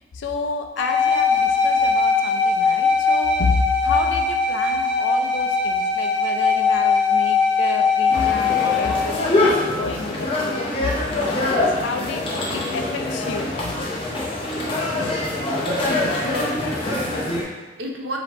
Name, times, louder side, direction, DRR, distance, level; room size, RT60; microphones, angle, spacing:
voice 1, 0.1-13.5, left 3 dB, 80° left, 5 dB, 0.4 m, -29 dB
sound 1, 0.8-9.0, left 4 dB, ahead, 1.3 m, -20 dB
sound 2, 8.1-17.4, left 2 dB, 30° left, 0.6 m, -24 dB
voice 2, 16.2-18.2, equal, 70° right, 1 dB, 0.6 m, -34 dB
5.1 x 2.8 x 3.0 m, 1.2 s
head